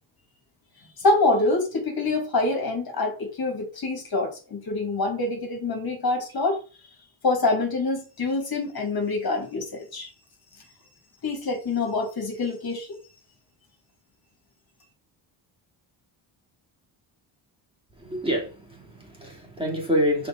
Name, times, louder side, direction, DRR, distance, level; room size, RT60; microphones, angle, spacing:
voice 1, 1.0-6.6 7.2-10.1 11.2-13.0, left 3 dB, 45° left, 2.2 m, -25 dB
voice 2, 18.0-20.3, equal, 10° right, 2.5 m, -27 dB
5.7 x 4.9 x 3.8 m
cardioid pair, 75°, 49 cm